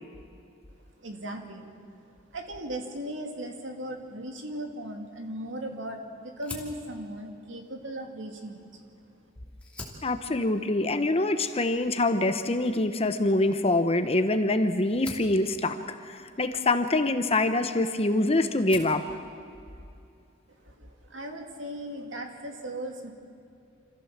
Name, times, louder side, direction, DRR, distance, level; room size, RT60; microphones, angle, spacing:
voice 1, 1.0-1.7 2.1-8.8 20.6-23.1, right 1 dB, 75° right, 3 dB, 2.6 m, -38 dB
Fire, 6.4-9.0 9.5-18.1 18.4-19.1, left 2 dB, 5° left, 2.8 m, -47 dB
voice 2, 10.0-15.8 16.0-19.0, left 2 dB, 30° left, 8 dB, 1.0 m, -25 dB
27.0 x 15.0 x 7.4 m, 2.5 s
head